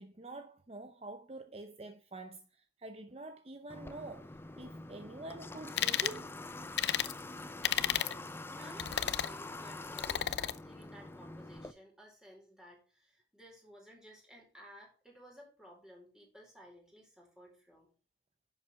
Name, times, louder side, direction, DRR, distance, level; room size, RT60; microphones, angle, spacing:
voice 1, 0.0-4.2 4.6-6.3, right 2 dB, 35° right, 0.7 m, -47 dB
Water / Water tap faucet, 3.7-11.7, left 2 dB, 10° left, 0.5 m, -46 dB
Drilling Bursts, 5.8-6.2 6.8-7.1 7.6-8.1 8.8-9.3 10.0-10.6, left 10 dB, 70° left, 0.6 m, -32 dB
voice 2, 7.8-8.2 8.5-17.9, equal, 5° right, 4.4 m, -56 dB
10.5 x 7.4 x 3.5 m
head